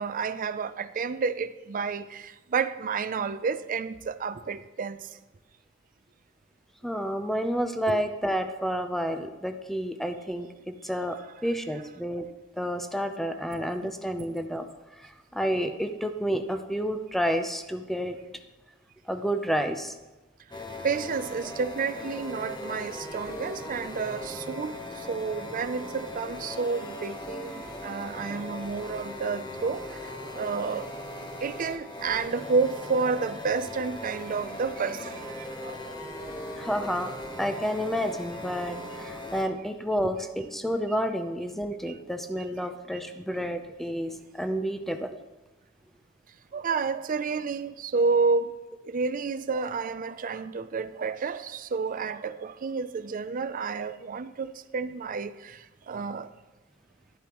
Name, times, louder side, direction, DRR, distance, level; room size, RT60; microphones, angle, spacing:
voice 1, 0.0-5.1 7.9-8.0 13.8-13.9 20.8-30.9 31.4-36.0 46.5-48.6 48.8-56.3, right 4 dB, 40° right, 0.4 m, -30 dB
voice 2, 6.8-12.3 12.6-14.7 15.0-18.3 19.1-19.9 36.6-45.2, equal, ahead, 0.6 m, -30 dB
sound 1, 20.5-39.4, left 1 dB, 20° left, 1.1 m, -39 dB
11.5 x 11.5 x 3.0 m
head